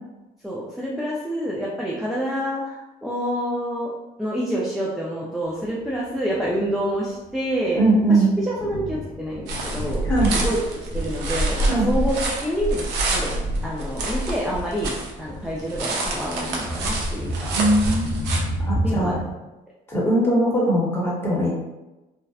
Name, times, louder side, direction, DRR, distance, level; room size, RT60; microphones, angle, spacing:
voice 1, 0.4-3.9 4.2-7.8 8.1-10.0 10.3-10.6 10.9-12.8 13.1-13.3 13.6-17.6 18.8-19.3, equal, ahead, -5 dB, 0.3 m, -27 dB
Thunder, 5.7-19.3, equal, 80° left, 0.5 m, -33 dB
voice 2, 7.8-8.3 10.1-10.3 11.7-11.9 17.5-18.1 18.7-19.2 19.9-21.5, right 1 dB, 15° left, -5 dB, 0.9 m, -20 dB
sound 1, 9.5-15.1 15.4-18.4, right 1 dB, 80° right, 0.5 m, -27 dB
2.6 x 2.1 x 2.3 m, 1.0 s
cardioid pair, 110°, 17 cm